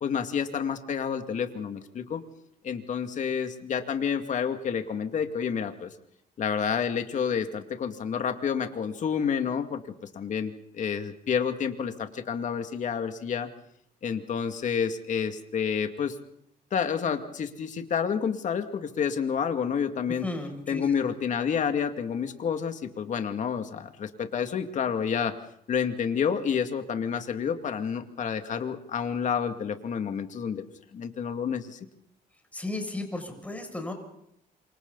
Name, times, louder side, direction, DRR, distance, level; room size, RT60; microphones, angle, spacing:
voice 1, 0.0-2.2 2.6-5.9 6.4-13.5 14.0-16.2 16.7-20.3 20.7-25.4 25.7-30.6 30.9-31.8, left 7 dB, 45° left, 6 dB, 2.4 m, -29 dB
voice 2, 20.2-20.8 32.5-33.9, left 2 dB, 10° left, 3 dB, 6.7 m, -34 dB
28.0 x 25.5 x 4.1 m, 0.73 s
cardioid pair, 110°, 17 cm